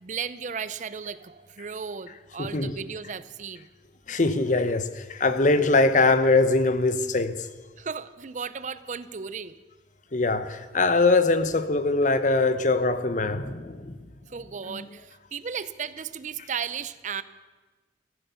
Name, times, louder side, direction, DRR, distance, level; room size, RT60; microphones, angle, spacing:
voice 1, 0.0-3.7 7.8-9.6 14.3-17.2, right 6 dB, 45° right, 0.5 m, -35 dB
voice 2, 2.4-2.7 4.1-7.5 10.1-14.0 14.7-14.9, left 3 dB, 45° left, 0.9 m, -22 dB
14.5 x 13.5 x 6.9 m
head